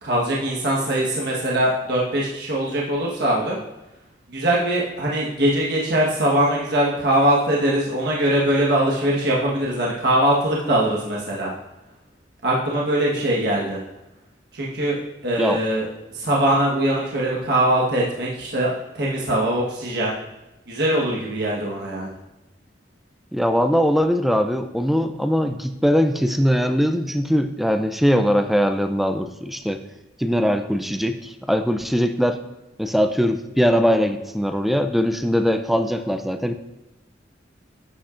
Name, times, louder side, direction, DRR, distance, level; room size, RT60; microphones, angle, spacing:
voice 1, 0.0-3.6 4.3-11.5 12.4-13.8 14.5-20.2 20.7-22.1, right 1 dB, 60° right, -4 dB, 1.4 m, -22 dB
voice 2, 23.3-29.8 30.2-32.4 32.8-36.5, equal, ahead, 7 dB, 0.5 m, -21 dB
11.5 x 8.5 x 2.6 m, 1.0 s
head